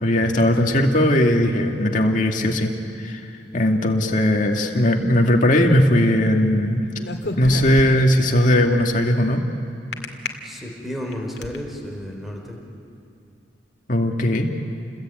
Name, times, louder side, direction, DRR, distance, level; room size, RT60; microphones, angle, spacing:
voice 1, 0.0-2.7 3.0-3.2 3.5-6.8 7.4-9.4 13.9-14.5, left 1 dB, 45° left, 2 dB, 2.2 m, -18 dB
sound 1, 7.0-8.2 9.9-10.3 10.9-11.6, left 2 dB, 65° left, 2.1 m, -29 dB
voice 2, 10.4-12.6, equal, ahead, 0 dB, 3.8 m, -32 dB
29.0 x 21.0 x 9.2 m, 2.7 s
head